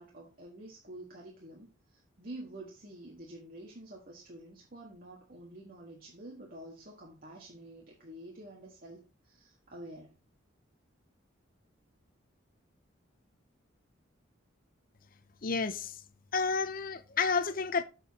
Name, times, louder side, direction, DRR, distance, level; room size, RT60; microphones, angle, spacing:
voice 1, 0.0-10.1, right 1 dB, 45° right, 1.6 m, -48 dB
voice 2, 15.4-16.0 16.3-17.8, left 5 dB, 45° left, 0.7 m, -30 dB
7.0 x 7.0 x 4.2 m
head